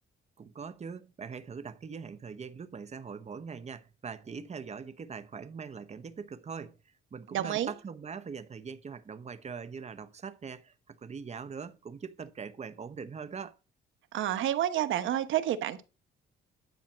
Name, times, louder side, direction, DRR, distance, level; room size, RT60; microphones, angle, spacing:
voice 1, 0.4-6.8 7.1-13.6, right 6 dB, 35° right, 1.0 m, -42 dB
voice 2, 7.3-7.7 14.1-15.8, right 11 dB, 75° right, 1.1 m, -29 dB
10.5 x 4.2 x 7.2 m
cardioid pair, 90°, 20 cm